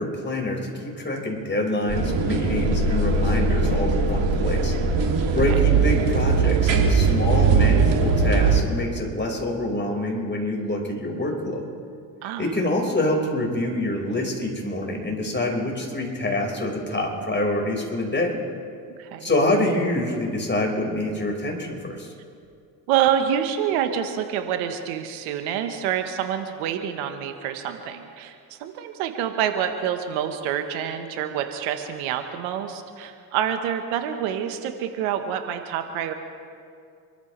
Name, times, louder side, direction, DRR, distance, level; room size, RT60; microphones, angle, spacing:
voice 1, 0.0-4.7 5.3-11.7 12.4-18.3 19.2-22.1, left 1 dB, 25° left, -1 dB, 5.3 m, -26 dB
sound 1, 1.9-8.6, right 4 dB, 65° right, 2.9 m, -20 dB
voice 2, 19.0-19.3 22.9-36.1, right 9 dB, 80° right, 7 dB, 1.4 m, -27 dB
28.0 x 14.0 x 3.4 m, 2.3 s
hypercardioid pair, 55°, 48 cm